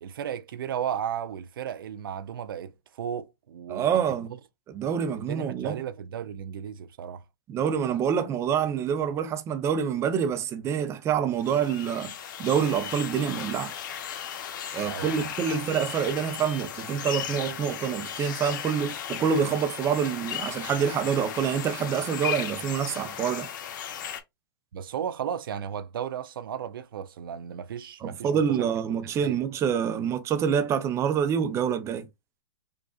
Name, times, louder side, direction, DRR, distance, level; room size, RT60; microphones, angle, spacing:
voice 1, 0.0-4.4 5.2-7.2 14.8-15.6 24.7-29.4, right 9 dB, 75° right, 0.5 m, -35 dB
voice 2, 3.7-4.3 4.7-5.8 7.5-12.1 12.4-13.7 14.7-23.5 28.0-32.1, right 7 dB, 25° right, 0.6 m, -26 dB
sound 1, 11.4-24.2, left 9 dB, 60° left, 0.9 m, -36 dB
5.0 x 2.4 x 2.4 m
hypercardioid pair, 130°, 12 cm